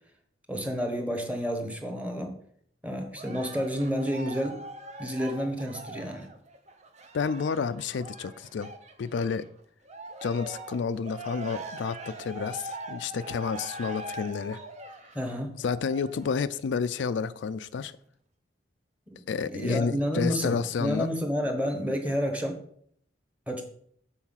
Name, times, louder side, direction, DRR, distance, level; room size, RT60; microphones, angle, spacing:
voice 1, 0.5-2.3 2.8-4.6 5.0-6.3 15.1-15.5 19.1-19.2 19.5-22.6 23.5-23.6, equal, 10° right, 4 dB, 1.3 m, -30 dB
Cheering, 3.2-9.5 9.9-16.4 17.1-17.2, right 1 dB, 40° right, 0.8 m, -42 dB
voice 2, 7.1-8.7 9.0-9.5 10.2-14.6 15.6-17.9 19.3-21.1, left 5 dB, 90° left, 14 dB, 0.4 m, -30 dB
7.1 x 4.4 x 5.7 m, 0.64 s
head